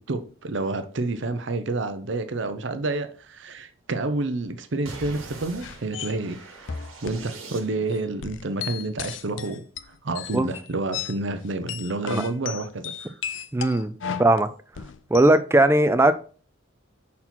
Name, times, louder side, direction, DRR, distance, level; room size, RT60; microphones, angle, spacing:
voice 1, 0.1-6.4 7.0-9.6 10.0-13.1, right 2 dB, 65° right, 0.7 m, -29 dB
sound 1, 4.9-8.1, right 3 dB, 90° right, 1.6 m, -42 dB
sound 2, 5.6-6.2 6.7-7.2 7.5-7.6 7.9-11.2 11.5-15.4, left 8 dB, 65° left, 0.5 m, -35 dB
voice 2, 13.5-13.9 14.2-14.5 15.1-16.1, right 1 dB, 15° right, 0.4 m, -18 dB
5.9 x 4.2 x 4.3 m
head